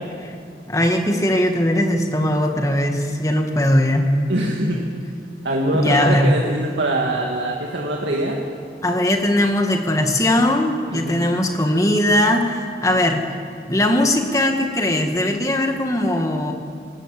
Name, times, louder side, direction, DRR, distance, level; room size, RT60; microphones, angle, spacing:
voice 1, 0.7-4.1 5.7-6.3 8.8-13.2 13.7-16.5, left 1 dB, 20° left, 4 dB, 1.8 m, -19 dB
voice 2, 4.3-4.9 5.4-8.4 10.9-11.3, right 1 dB, 90° right, -1 dB, 2.1 m, -23 dB
20.0 x 19.0 x 8.4 m, 2.4 s
head